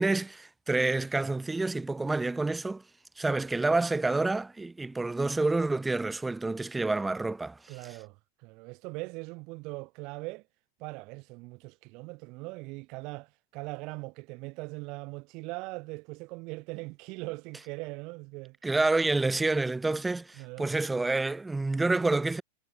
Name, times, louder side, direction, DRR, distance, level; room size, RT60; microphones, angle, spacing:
voice 1, 0.0-2.8 3.2-7.8 18.6-22.4, right 3 dB, 10° right, 6.8 m, -28 dB
voice 2, 7.7-10.4 10.8-18.6 20.4-20.7, right 26 dB, 50° right, 3.4 m, -40 dB
hypercardioid pair, 105°, 0 cm